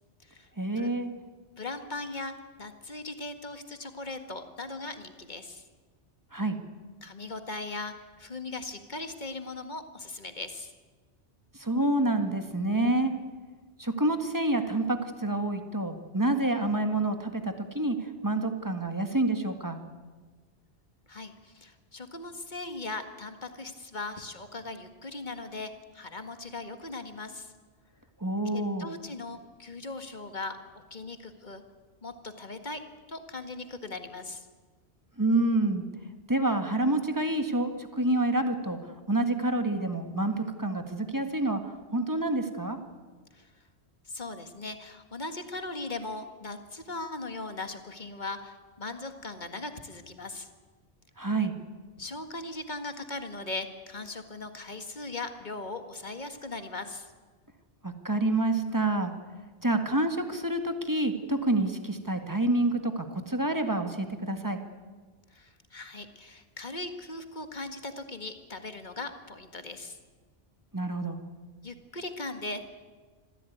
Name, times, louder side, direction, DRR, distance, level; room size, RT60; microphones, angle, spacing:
voice 1, 0.6-1.1 6.3-6.6 11.5-13.1 13.8-19.8 28.2-28.9 35.2-35.8 36.3-42.8 51.2-51.5 57.8-59.1 59.6-64.6 70.7-71.2, right 2 dB, 15° right, 7 dB, 1.7 m, -28 dB
voice 2, 1.6-5.7 7.0-10.7 21.1-27.5 28.5-31.6 32.0-34.5 43.3-43.6 44.1-50.5 52.0-57.1 65.3-70.0 71.6-72.7, left 2 dB, 40° left, 8 dB, 1.9 m, -39 dB
25.5 x 15.0 x 9.4 m, 1.4 s
omnidirectional pair, 1.2 m